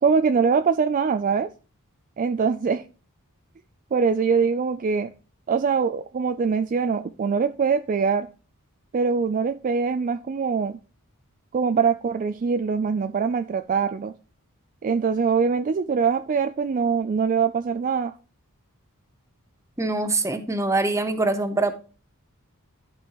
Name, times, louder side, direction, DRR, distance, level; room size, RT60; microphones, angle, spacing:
voice 1, 0.0-1.5 2.2-2.8 3.9-5.1 5.5-8.3 8.9-10.8 11.5-14.1 14.8-18.1, right 5 dB, 35° right, 0.3 m, -23 dB
voice 2, 19.8-21.7, right 2 dB, 15° right, 0.8 m, -24 dB
12.5 x 5.3 x 3.0 m
head